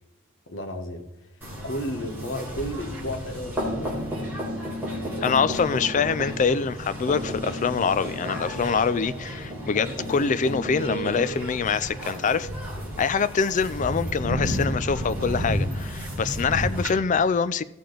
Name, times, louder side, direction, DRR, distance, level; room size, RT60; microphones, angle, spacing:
voice 1, 0.5-4.1 4.8-5.3, equal, 60° left, 1.1 m, -34 dB
sound 1, 1.4-16.9, equal, 10° right, 3.8 m, -32 dB
voice 2, 5.2-12.5 13.0-17.6, left 5 dB, 35° left, 0.3 m, -24 dB
16.0 x 6.6 x 3.9 m
head